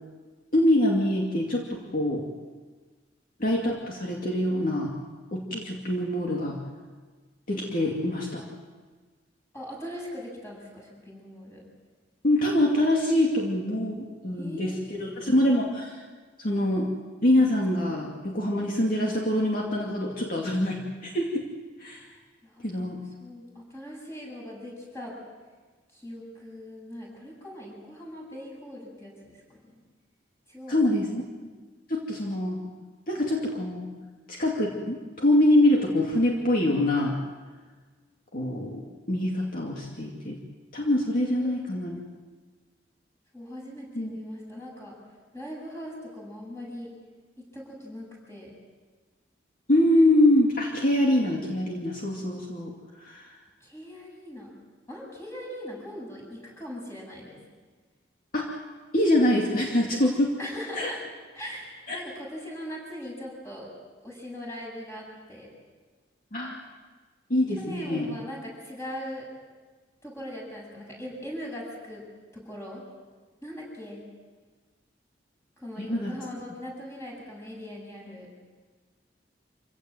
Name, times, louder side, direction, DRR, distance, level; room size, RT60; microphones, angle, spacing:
voice 1, 0.5-2.3 3.4-4.9 5.3-6.6 7.5-8.5 12.2-16.0 16.4-16.9 17.2-21.5 21.8-22.1 22.6-23.0 30.7-31.2 31.9-32.6 33.1-33.9 34.3-37.2 38.3-40.4 40.7-42.0 44.0-44.2 49.7-52.7 53.0-53.3 58.3-58.6 58.9-60.3 60.8-60.9 61.9-62.0 66.3-66.6 67.3-68.1 75.8-76.1, left 1 dB, 50° left, -1 dB, 2.4 m, -24 dB
voice 2, 9.5-11.6 14.4-15.2 22.4-25.1 25.9-29.8 30.5-30.8 41.1-41.9 43.3-44.9 45.3-46.9 47.4-48.5 53.6-54.5 54.9-57.4 60.4-61.0 61.3-63.7 64.0-65.5 67.6-69.3 70.0-72.0 72.3-72.8 73.4-74.0 75.6-78.3, equal, 15° left, -3 dB, 8.0 m, -40 dB
26.5 x 17.0 x 7.8 m, 1.4 s
head